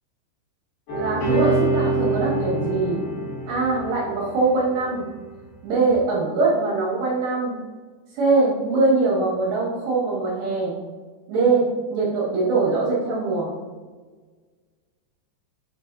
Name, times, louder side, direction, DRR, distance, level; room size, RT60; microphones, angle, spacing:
sound 1, 0.9-5.0 5.8-5.9, right 2 dB, 50° left, 3.5 m, -26 dB
voice 1, 0.9-3.0 3.4-5.1 5.6-7.5 8.1-10.8 11.3-13.5, right 3 dB, 70° right, -4 dB, 2.0 m, -22 dB
9.7 x 5.0 x 2.6 m, 1.4 s
omnidirectional pair, 5.5 m